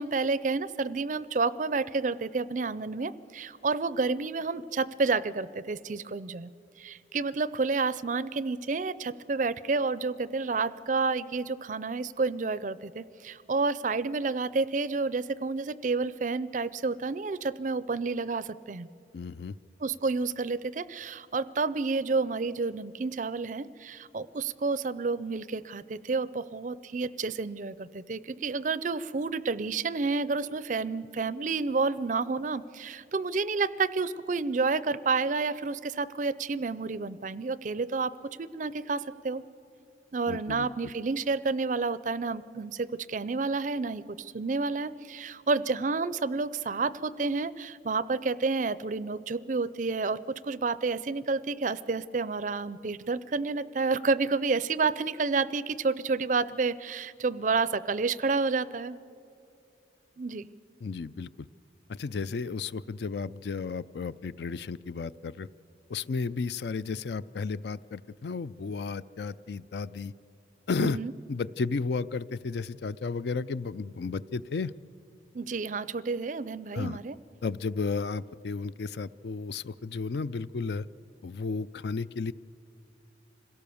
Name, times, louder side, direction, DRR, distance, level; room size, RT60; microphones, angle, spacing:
voice 1, 0.0-6.5 6.8-18.9 19.8-38.1 38.4-39.4 40.1-59.0 60.2-60.5 70.8-71.1 75.3-77.1, right 4 dB, 40° right, 17 dB, 0.5 m, -30 dB
voice 2, 19.1-19.6 40.3-40.7 60.8-61.5 61.9-65.5 65.9-70.1 70.7-71.0 71.3-74.7 76.7-77.0 77.4-80.8 81.2-82.3, left 4 dB, 60° left, 16 dB, 0.4 m, -33 dB
26.0 x 17.0 x 7.0 m, 2.5 s
head